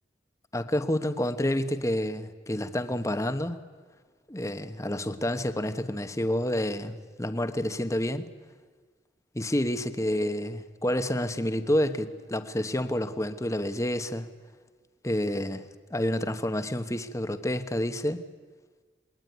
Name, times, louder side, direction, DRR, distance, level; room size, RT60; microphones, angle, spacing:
voice 1, 0.5-3.6 4.3-8.3 9.3-14.3 15.0-18.2, left 1 dB, 20° left, 10 dB, 1.2 m, -29 dB
28.0 x 21.5 x 9.4 m, 1.5 s
head